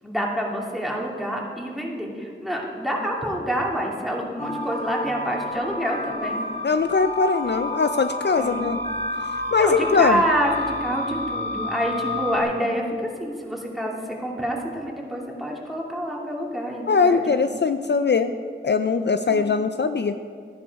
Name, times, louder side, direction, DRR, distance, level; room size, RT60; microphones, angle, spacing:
voice 1, 0.0-6.4 8.3-8.7 9.6-17.6 19.3-19.4, equal, ahead, -2 dB, 2.6 m, -27 dB
sound 1, 4.4-12.4, left 2 dB, 30° left, 1.9 m, -30 dB
voice 2, 6.6-8.8 9.5-10.2 16.9-18.3 18.6-20.2, left 4 dB, 55° left, 9 dB, 0.5 m, -21 dB
13.0 x 10.5 x 4.7 m, 2.1 s
wide cardioid pair, 45°, 21 cm